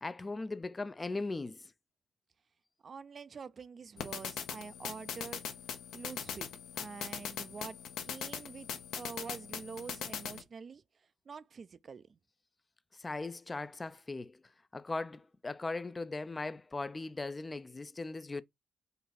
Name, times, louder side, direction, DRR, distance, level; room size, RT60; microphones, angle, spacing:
voice 1, 0.0-1.6 13.0-14.4 14.7-18.4, left 3 dB, 25° left, 0.3 m, -38 dB
voice 2, 2.8-5.4 5.9-6.5 6.8-8.7 9.0-10.8 11.3-12.2, right 5 dB, 45° right, 0.3 m, -46 dB
sound 1, 4.0-10.4, left 7 dB, 75° left, 0.7 m, -41 dB
4.0 x 2.3 x 4.0 m
supercardioid pair, 60°, 0 cm